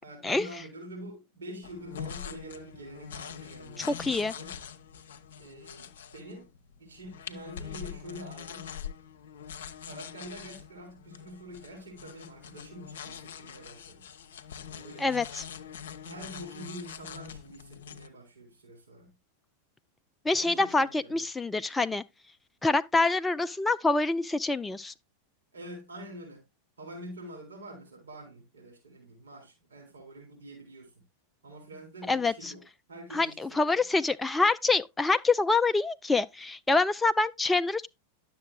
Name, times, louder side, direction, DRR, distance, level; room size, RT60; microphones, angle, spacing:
voice 1, 0.0-4.6 5.4-6.5 6.8-8.7 9.8-14.1 14.7-15.1 16.1-19.1 20.4-21.2 25.5-26.4 26.8-31.0 31.4-33.8, right 1 dB, 75° right, 3.6 m, -46 dB
sound 1, 1.6-18.1, left 8 dB, 60° left, 0.7 m, -44 dB
voice 2, 3.8-4.3 15.0-15.4 20.3-22.0 22.6-24.9 32.1-32.5 33.1-37.9, left 3 dB, 10° left, 0.3 m, -26 dB
11.0 x 6.9 x 2.2 m
figure-of-eight pair, 90°, 0 cm